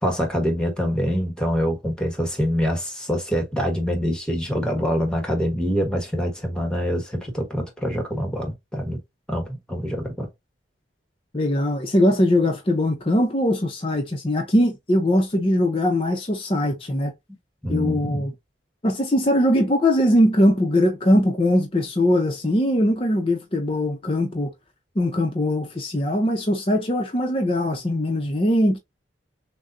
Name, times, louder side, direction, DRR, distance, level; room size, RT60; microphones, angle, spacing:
voice 1, 0.0-9.0 9.3-10.3 17.6-18.3, equal, 5° left, 1.1 m, -25 dB
voice 2, 11.3-17.1 17.7-18.3 18.8-24.5 25.0-28.8, left 1 dB, 30° left, 0.7 m, -21 dB
6.3 x 2.2 x 2.6 m
head